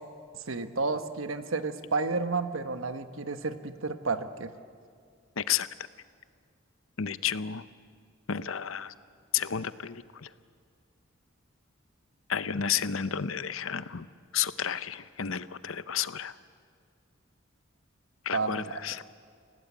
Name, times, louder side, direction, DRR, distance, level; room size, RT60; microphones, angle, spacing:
voice 1, 0.5-4.5 18.3-18.7, right 4 dB, 80° right, 10 dB, 1.2 m, -31 dB
voice 2, 5.4-5.7 7.0-7.6 8.3-8.9 9.3-10.3 12.3-14.1 14.3-16.4 18.2-19.0, left 8 dB, 85° left, 15 dB, 0.8 m, -31 dB
28.5 x 18.0 x 8.4 m, 2.1 s
head